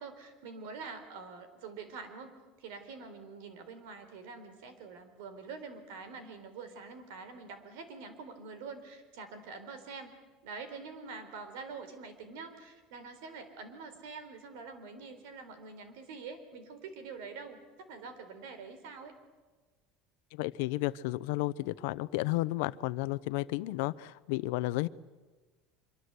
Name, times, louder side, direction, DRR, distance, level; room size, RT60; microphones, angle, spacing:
voice 1, 0.0-10.1 10.4-19.1, right 4 dB, 90° right, 10 dB, 4.0 m, -46 dB
voice 2, 20.3-24.9, left 19 dB, 85° left, 17 dB, 0.7 m, -32 dB
25.0 x 24.0 x 8.2 m, 1.3 s
cardioid pair, 155°, 0 cm